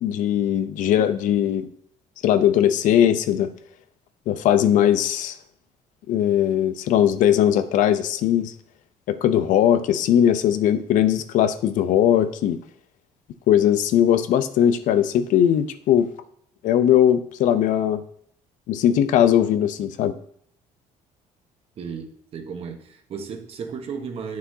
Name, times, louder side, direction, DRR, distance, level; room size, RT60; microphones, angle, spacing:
voice 1, 0.0-1.7 2.2-3.5 4.3-5.4 6.1-8.5 9.1-12.6 13.5-16.1 16.6-18.0 18.7-20.1, left 10 dB, 70° left, 0.6 m, -19 dB
voice 2, 21.8-24.4, right 6 dB, 45° right, 1.1 m, -34 dB
9.4 x 6.3 x 2.8 m
cardioid pair, 140°, 14 cm